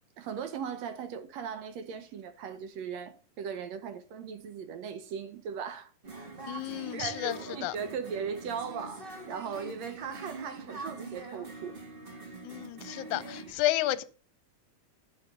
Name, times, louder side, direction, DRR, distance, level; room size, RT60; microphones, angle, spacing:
voice 1, 0.2-5.9 6.5-11.8, right 6 dB, 70° right, 1.8 m, -38 dB
sound 1, 6.0-13.5, right 2 dB, 85° right, 0.4 m, -44 dB
voice 2, 6.5-7.8 12.4-14.0, left 15 dB, 75° left, 1.9 m, -32 dB
10.5 x 5.8 x 6.6 m
omnidirectional pair, 3.8 m